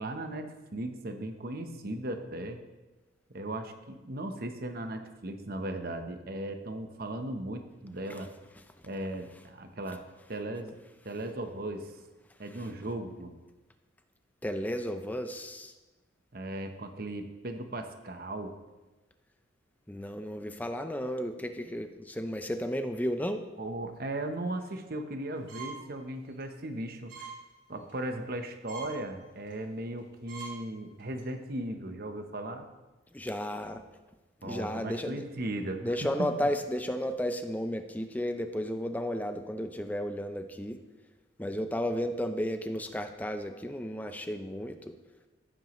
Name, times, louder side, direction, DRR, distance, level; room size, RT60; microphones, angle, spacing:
voice 1, 0.0-2.6 3.3-8.3 8.8-10.0 10.3-10.8 11.0-11.9 12.4-13.4 16.3-18.6 23.6-27.3 27.7-32.7 34.4-36.3, right 1 dB, 50° right, 6 dB, 1.0 m, -37 dB
voice 2, 14.4-15.7 19.9-23.4 33.1-33.8 34.4-35.2 35.8-40.8 41.4-44.9, equal, 10° left, 7 dB, 0.6 m, -33 dB
sound 1, 25.5-25.9 26.3-26.4 27.1-27.4 27.7-28.0 28.4-28.5 28.7-28.9 29.5-29.6 30.0-30.1 30.3-30.5 31.0-31.2, right 6 dB, 75° right, 3.8 m, -43 dB
15.0 x 8.8 x 3.1 m, 1.1 s
head